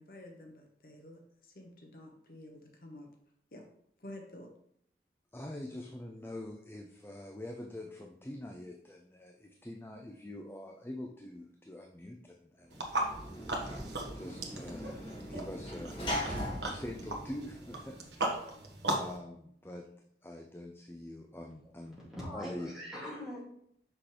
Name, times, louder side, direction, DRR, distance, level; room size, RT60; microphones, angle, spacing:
voice 1, 0.0-3.1 3.5-3.7 4.0-4.5, left 1 dB, 55° left, 2 dB, 1.0 m, -50 dB
voice 2, 5.3-13.1 13.4-13.7 14.1-16.0 16.3-18.5 18.9-22.0 22.3-22.8, left 1 dB, 15° left, 1 dB, 0.4 m, -45 dB
Sliding door / Slam, 12.7-18.1, equal, 30° left, 2.4 m, -40 dB
sound 1, 12.7-19.2, right 1 dB, 80° right, 1.2 m, -38 dB
voice 3, 22.0-23.4, equal, ahead, -7 dB, 2.4 m, -42 dB
6.0 x 5.9 x 3.3 m, 0.70 s
head